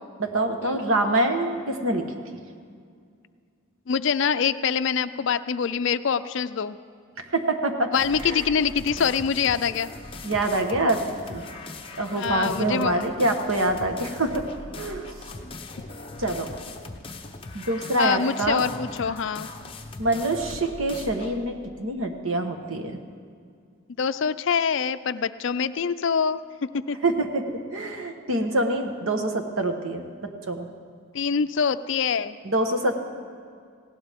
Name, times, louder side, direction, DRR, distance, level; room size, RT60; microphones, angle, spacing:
voice 1, 0.2-2.1 7.3-7.9 8.2-8.4 10.2-11.0 11.3-11.4 12.0-14.4 14.8-15.1 16.2-16.5 17.5-18.6 20.0-23.0 27.0-27.4 27.7-30.0 30.5-30.7 32.4-33.0, right 2 dB, 70° right, 5 dB, 1.3 m, -25 dB
voice 2, 3.9-6.8 7.9-9.9 12.2-13.1 18.0-19.5 24.0-26.4 26.7-27.0 31.1-32.4, left 6 dB, 60° left, 13 dB, 0.4 m, -25 dB
sound 1, 7.9-21.4, left 2 dB, 25° left, 0.9 m, -40 dB
19.0 x 16.5 x 3.6 m, 2.2 s
head